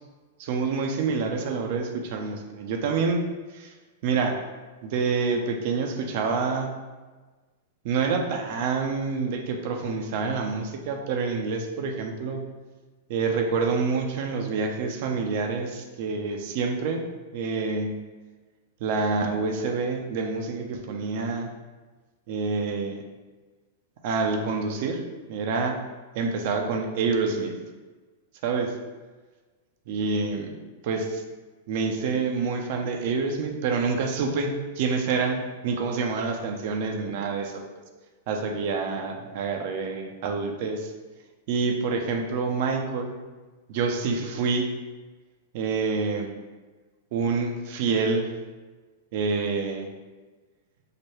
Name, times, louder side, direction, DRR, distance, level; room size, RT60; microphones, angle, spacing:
voice 1, 0.4-3.2 3.5-3.7 4.0-4.4 4.8-6.7 7.8-12.4 13.1-17.0 17.3-18.0 18.8-21.5 22.3-23.0 24.0-25.0 25.3-25.8 26.1-27.6 28.4-28.8 29.9-30.6 30.8-31.2 31.7-37.6 38.3-40.9 41.5-43.1 43.7-44.7 45.5-46.3 47.1-48.3 49.1-49.9, right 4 dB, 55° right, 4 dB, 0.5 m, -27 dB
4.7 x 2.2 x 3.0 m, 1.3 s
hypercardioid pair, 120°, 0 cm